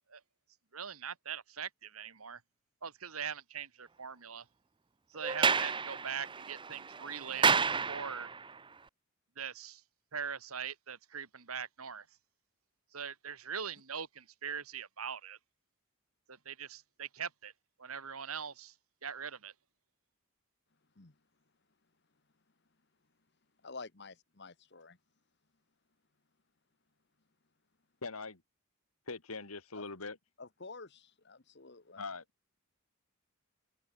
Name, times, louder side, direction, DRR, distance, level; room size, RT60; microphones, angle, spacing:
voice 1, 0.7-2.4 2.8-4.4 5.1-7.6 7.9-8.3 9.4-9.8 10.1-12.1 12.9-15.4 16.3-17.5 17.8-18.7 19.0-19.5, right 7 dB, 85° right, 2.2 m, -41 dB
Sliding door, 5.2-8.5, right 5 dB, 20° right, 0.7 m, -31 dB
voice 2, 23.6-25.0 29.7-29.8 30.4-32.0, left 4 dB, 50° left, 1.4 m, -49 dB
voice 3, 28.0-28.4 29.1-30.2 32.0-32.2, left 3 dB, 90° left, 2.6 m, -41 dB
head